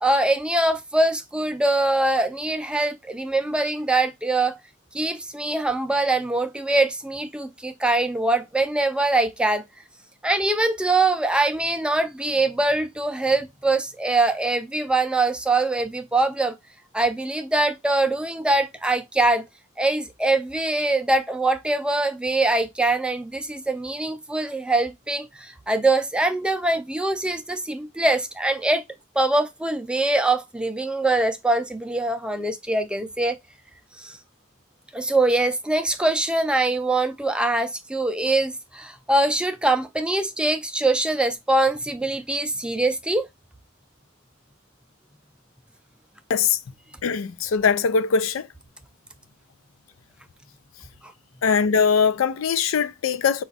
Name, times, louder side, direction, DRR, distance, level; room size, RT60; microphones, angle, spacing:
voice 1, 0.0-4.6 4.9-9.6 10.2-16.5 16.9-19.4 19.8-28.8 29.2-33.4 34.0-34.2 34.9-43.3, right 2 dB, 5° right, 0.4 m, -23 dB
voice 2, 47.0-48.5 51.4-53.4, left 6 dB, 85° left, 0.4 m, -21 dB
4.9 x 2.4 x 3.9 m
head